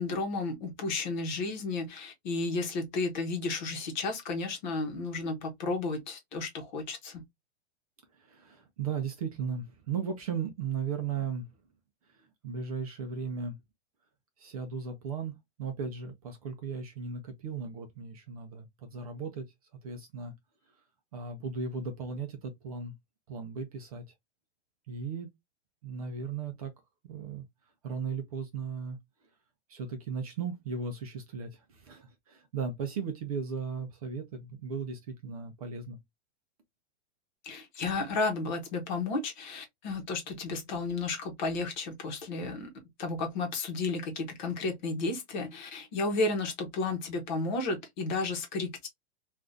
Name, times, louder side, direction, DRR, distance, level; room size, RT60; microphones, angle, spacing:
voice 1, 0.0-7.2 37.4-42.7 43.0-48.9, left 3 dB, 40° left, 1.0 m, -33 dB
voice 2, 8.1-11.5 12.4-13.6 14.4-19.4 19.8-20.3 21.1-22.9 23.3-24.0 24.9-25.3 25.8-26.7 27.0-27.5 27.8-29.0 29.7-36.0, right 5 dB, 35° right, 0.5 m, -36 dB
3.4 x 2.4 x 2.5 m
supercardioid pair, 175°, 34 cm